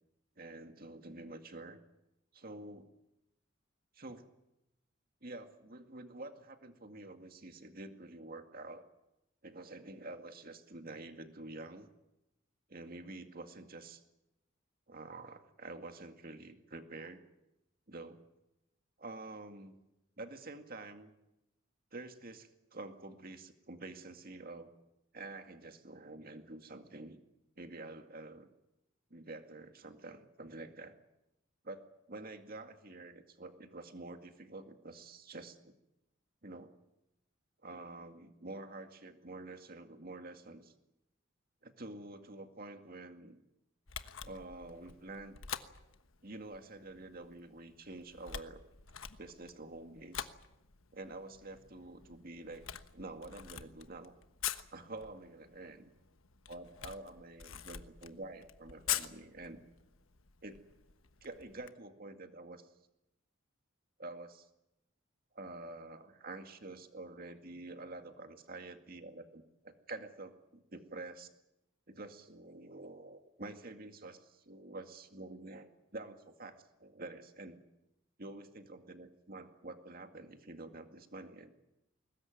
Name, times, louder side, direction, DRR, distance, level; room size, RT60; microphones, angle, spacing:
voice 1, 0.4-1.8 2.3-2.9 3.9-4.3 5.2-8.8 9.4-11.9 12.7-14.0 14.9-17.2 17.9-18.2 19.0-19.8 20.2-21.1 21.9-24.7 25.1-27.2 27.6-28.5 29.1-30.9 31.6-35.7 36.4-36.7 37.6-40.7 41.6-43.4 44.2-45.4 46.2-48.6 49.2-50.3 50.9-52.7 52.9-54.2 54.7-55.9 56.5-59.6 60.4-60.6 61.2-62.7 64.0-64.5 65.3-71.3 71.9-77.6 78.2-81.5, right 2 dB, 45° right, 6 dB, 2.1 m, -48 dB
Camera, 43.9-61.7, left 10 dB, 85° left, 1.2 m, -45 dB
22.0 x 19.5 x 9.3 m, 0.90 s
head